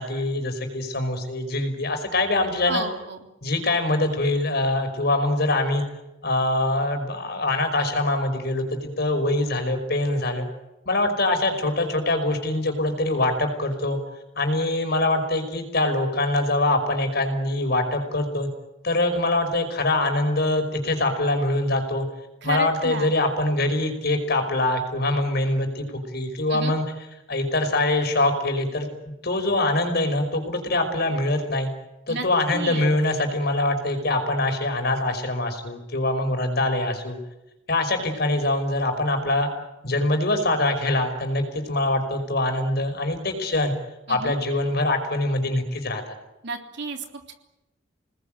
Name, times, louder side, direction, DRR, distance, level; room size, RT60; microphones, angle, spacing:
voice 1, 0.0-2.8 3.4-5.8 6.2-10.5 10.9-14.0 14.4-18.5 18.8-22.1 22.4-26.8 27.3-28.9 29.2-31.7 32.1-37.2 37.7-39.5 39.8-43.7 44.1-46.1, left 2 dB, 55° left, 6 dB, 5.4 m, -24 dB
voice 2, 2.6-3.3 22.4-23.2 26.5-26.8 32.1-32.2 32.5-32.9 44.1-44.3 46.4-47.3, right 3 dB, 65° right, 4 dB, 3.5 m, -32 dB
29.0 x 19.5 x 9.1 m, 0.95 s
head